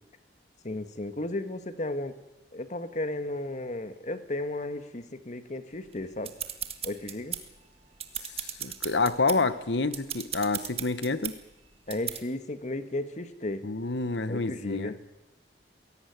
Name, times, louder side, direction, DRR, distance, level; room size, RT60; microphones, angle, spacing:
voice 1, 0.6-2.2 2.5-6.3 6.8-7.4 11.9-13.7 14.3-15.0, left 2 dB, 45° left, 10 dB, 1.6 m, -34 dB
sound 1, 5.9-7.6 7.9-9.4 9.9-11.4 11.9-12.2, right 9 dB, 35° right, 1.7 m, -36 dB
voice 2, 8.4-11.3 13.6-15.0, left 3 dB, 90° left, 13 dB, 1.2 m, -28 dB
22.5 x 17.5 x 9.5 m, 1.0 s
head